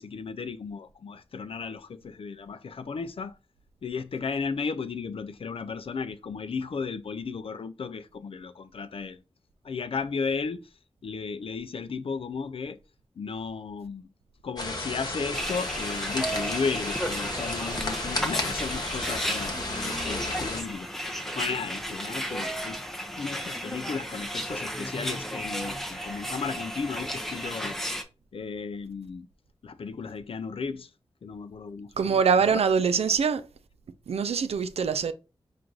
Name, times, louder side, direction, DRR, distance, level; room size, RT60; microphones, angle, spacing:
voice 1, 0.0-3.4 3.8-9.2 9.6-10.6 11.0-12.8 13.2-14.1 14.4-22.8 23.2-27.8 28.3-29.3 29.6-30.9 31.2-32.2 32.5-32.6, left 5 dB, 65° left, 0.4 m, -34 dB
sound 1, 14.6-20.6, left 2 dB, 40° left, 1.0 m, -33 dB
sound 2, 15.3-28.0, equal, 5° left, 0.6 m, -34 dB
voice 2, 32.0-33.5 34.1-35.1, right 6 dB, 90° right, 0.4 m, -24 dB
4.5 x 2.5 x 3.8 m
wide cardioid pair, 75°, 10 cm